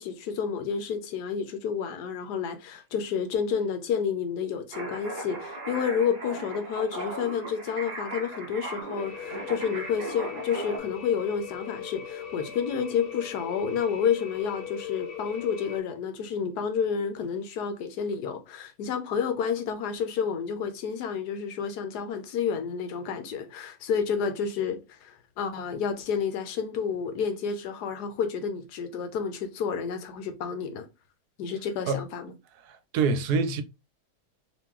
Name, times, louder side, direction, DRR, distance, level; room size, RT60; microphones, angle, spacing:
voice 1, 0.0-30.9 31.4-32.3, left 7 dB, 85° left, 1.3 m, -30 dB
sound 1, 4.7-10.8, right 2 dB, 40° right, 1.3 m, -37 dB
sound 2, 9.0-15.8, left 8 dB, 70° left, 0.5 m, -39 dB
voice 2, 32.6-33.6, right 4 dB, 75° right, 1.1 m, -26 dB
3.1 x 3.0 x 3.6 m
omnidirectional pair, 1.7 m